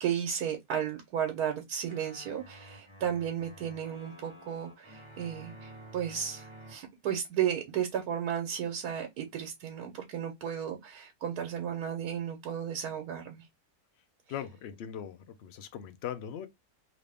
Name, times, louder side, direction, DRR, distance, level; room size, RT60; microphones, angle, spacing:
voice 1, 0.0-13.5, right 9 dB, 85° right, 1.3 m, -34 dB
sound 1, 1.8-6.8, right 1 dB, 20° right, 1.3 m, -51 dB
voice 2, 14.3-16.5, left 9 dB, 65° left, 0.6 m, -40 dB
3.0 x 2.7 x 3.3 m
omnidirectional pair, 1.6 m